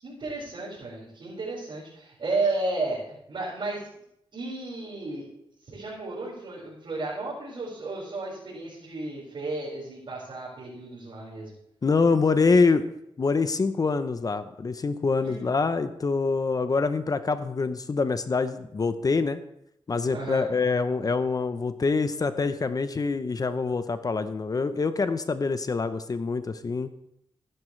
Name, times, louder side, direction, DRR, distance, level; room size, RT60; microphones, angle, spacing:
voice 1, 0.0-3.9 4.3-5.3 5.6-11.5 15.2-15.5 20.1-20.5, right 2 dB, 60° right, -8 dB, 5.0 m, -33 dB
voice 2, 11.8-12.8 13.2-19.4 19.9-26.9, left 4 dB, 40° left, 11 dB, 0.8 m, -25 dB
15.0 x 11.0 x 3.3 m, 0.77 s
cardioid pair, 75°, 9 cm